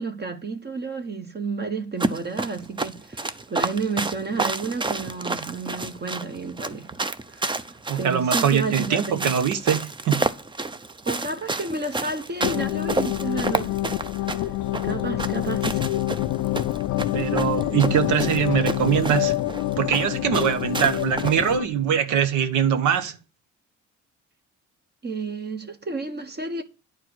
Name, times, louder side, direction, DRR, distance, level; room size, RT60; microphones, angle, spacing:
voice 1, 0.0-6.9 7.3-7.7 7.9-9.3 11.1-13.7 14.4-14.5 14.8-15.9 25.0-26.6, right 3 dB, 35° right, 1.1 m, -31 dB
sound 1, 2.0-21.6, right 3 dB, 15° right, 0.6 m, -30 dB
voice 2, 7.9-10.2 17.1-19.3 19.8-23.2, right 8 dB, 75° right, 1.1 m, -22 dB
sound 2, 12.4-21.7, left 15 dB, 85° left, 0.5 m, -27 dB
10.0 x 4.5 x 6.2 m
cardioid pair, 90°, 30 cm